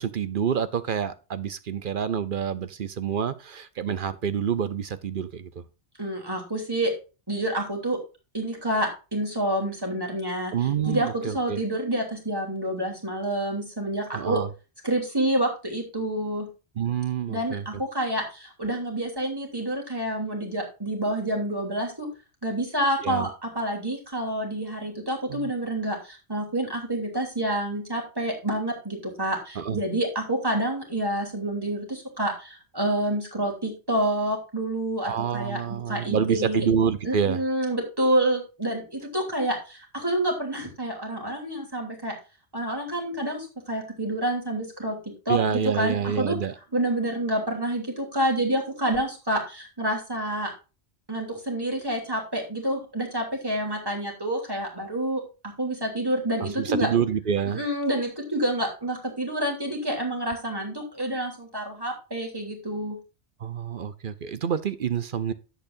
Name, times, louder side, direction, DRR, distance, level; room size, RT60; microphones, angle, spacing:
voice 1, 0.0-5.6 10.5-11.6 14.1-14.5 16.8-17.7 23.0-23.3 25.3-25.5 29.6-29.8 35.0-37.4 45.3-46.5 56.4-57.6 63.4-65.3, right 7 dB, 55° right, 0.8 m, -27 dB
voice 2, 6.0-6.9 7.3-8.0 8.3-14.4 14.8-16.5 17.3-22.1 22.4-36.7 37.0-42.1 42.5-45.0 45.2-46.4 46.7-50.5 51.1-55.2 55.6-56.9 57.5-63.0, right 1 dB, 20° right, 3.1 m, -28 dB
10.5 x 8.4 x 2.6 m
omnidirectional pair, 1.2 m